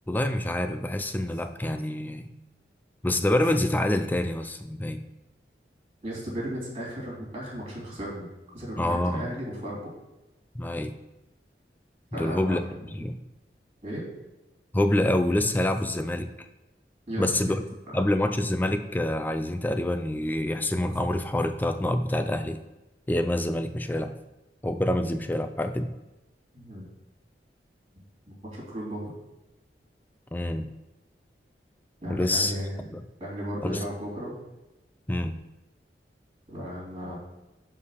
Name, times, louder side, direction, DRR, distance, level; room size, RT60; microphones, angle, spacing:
voice 1, 0.1-2.3 3.0-5.0 8.8-9.3 10.5-10.9 12.1-12.6 12.9-13.2 14.7-16.3 17.2-17.6 17.9-22.6 23.1-24.2 24.6-25.9 30.3-30.7 32.1-32.5 32.9-33.0 33.6-33.9 35.1-35.4, left 1 dB, 10° left, 8 dB, 0.3 m, -26 dB
voice 2, 6.0-8.3 8.5-9.9 12.1-12.6 13.8-14.1 17.1-17.2 26.5-26.9 28.5-29.1 32.0-32.9 33.2-34.3 36.5-37.2, equal, 35° right, -4 dB, 2.9 m, -35 dB
5.6 x 4.8 x 6.4 m, 1.0 s
head